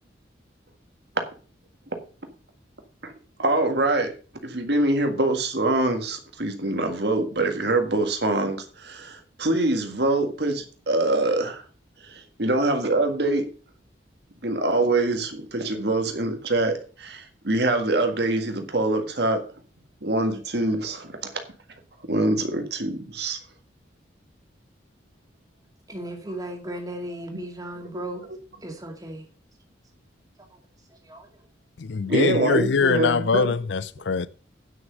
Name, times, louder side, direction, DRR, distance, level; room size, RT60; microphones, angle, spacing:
voice 1, 3.4-4.1 4.4-11.6 12.0-13.4 14.4-19.4 20.0-21.3 22.0-23.4 27.9-28.0 32.1-33.5, right 2 dB, 60° right, 1.8 m, -24 dB
voice 2, 25.9-28.2 28.6-29.2 31.0-31.3 32.1-32.2, right 1 dB, 20° right, 2.1 m, -35 dB
voice 3, 31.8-34.3, left 5 dB, 70° left, 0.5 m, -23 dB
9.5 x 6.1 x 6.4 m
head